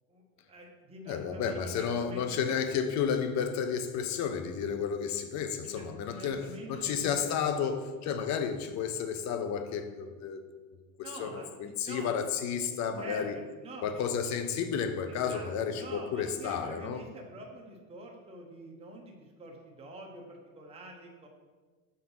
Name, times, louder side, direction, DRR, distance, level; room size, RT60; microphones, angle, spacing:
voice 1, 0.1-2.4 5.6-7.4 11.0-12.1 13.0-14.0 15.1-21.3, right 1 dB, 15° right, 0 dB, 1.0 m, -46 dB
voice 2, 1.1-10.4 11.0-13.4 13.8-17.0, left 7 dB, 45° left, 8 dB, 0.8 m, -32 dB
5.7 x 3.8 x 5.5 m, 1.3 s
hypercardioid pair, 100°, 40 cm